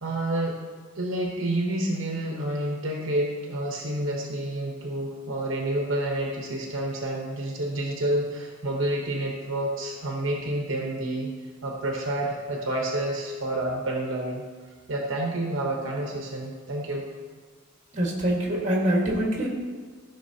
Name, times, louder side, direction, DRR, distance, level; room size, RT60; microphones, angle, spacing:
voice 1, 0.0-0.6 1.0-11.3 11.6-14.4 14.9-17.1, right 1 dB, 65° right, -1 dB, 1.1 m, -29 dB
voice 2, 17.9-19.5, right 1 dB, 35° right, -2 dB, 1.6 m, -24 dB
14.5 x 5.9 x 2.8 m, 1.5 s
head